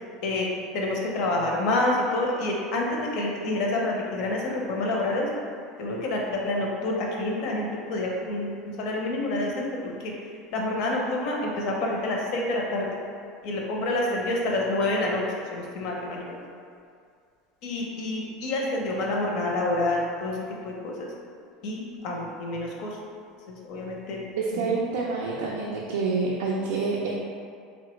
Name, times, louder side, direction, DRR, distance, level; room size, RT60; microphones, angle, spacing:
voice 1, 0.2-5.3 5.8-8.5 8.8-10.1 10.5-12.9 13.4-15.2 15.5-16.3 17.6-21.1 21.6-23.0 23.5-24.2 24.5-24.8, left 2 dB, 60° left, -1 dB, 0.6 m, -28 dB
voice 2, 24.4-27.1, right 4 dB, 90° right, -3 dB, 0.3 m, -27 dB
3.2 x 2.1 x 3.0 m, 2.3 s
supercardioid pair, 130°, 0 cm